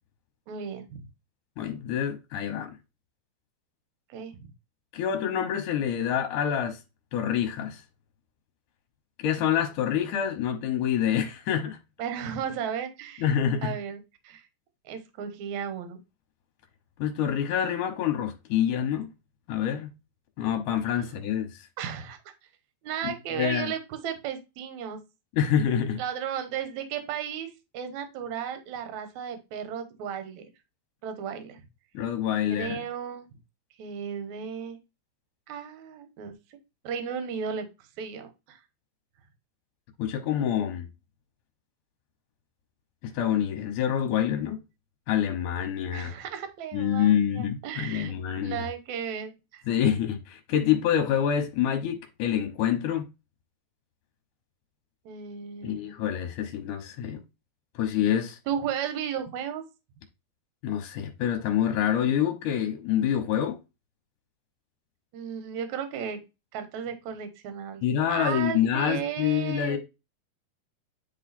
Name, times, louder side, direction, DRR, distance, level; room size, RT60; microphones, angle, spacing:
voice 1, 0.5-1.1 4.1-4.5 12.0-13.3 13.6-14.0 14.2-14.4 14.9-16.0 21.8-22.2 22.8-25.0 26.0-30.4 31.0-31.6 32.5-33.3 33.8-34.8 35.5-36.3 36.8-37.7 38.0-38.6 45.9-48.2 48.4-49.6 55.1-55.9 58.5-59.6 65.1-66.2 66.5-67.8 68.1-69.8, right 8 dB, 65° right, 2.0 m, -34 dB
voice 2, 1.6-2.8 4.9-6.8 7.1-7.8 9.2-11.8 13.2-13.7 17.0-19.1 19.5-19.9 20.4-21.7 23.0-23.7 25.3-26.0 31.9-32.8 40.0-40.9 43.1-44.6 45.1-46.1 46.7-48.7 49.7-53.1 55.6-57.2 57.8-58.4 60.6-63.6 67.8-69.8, left 9 dB, 70° left, 2.2 m, -26 dB
9.9 x 3.7 x 4.2 m
omnidirectional pair, 4.5 m